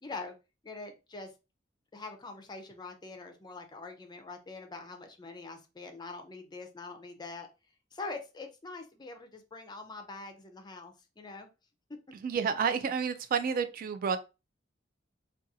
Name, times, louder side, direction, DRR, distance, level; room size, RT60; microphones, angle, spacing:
voice 1, 0.0-0.3 0.6-1.3 1.9-7.5 7.9-11.5, left 3 dB, 25° left, 0.4 m, -44 dB
voice 2, 12.2-14.2, right 6 dB, 50° right, 0.3 m, -30 dB
2.4 x 2.3 x 2.7 m
head